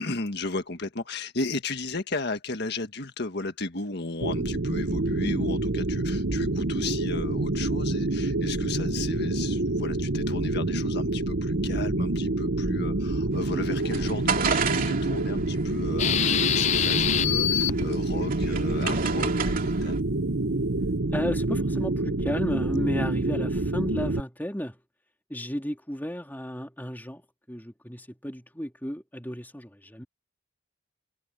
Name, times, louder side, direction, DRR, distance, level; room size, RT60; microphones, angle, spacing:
voice 1, 0.0-20.0, left 3 dB, 60° left, 1.7 m, -35 dB
sound 1, 4.2-24.2, right 2 dB, 65° right, 1.1 m, -27 dB
sound 2, 13.3-20.0, right 6 dB, 45° right, 2.8 m, -33 dB
sound 3, 16.0-17.9 18.4-18.5, left 10 dB, 35° left, 0.4 m, -25 dB
voice 2, 21.1-24.8 25.3-27.2 27.5-30.0, equal, 10° left, 3.1 m, -33 dB
head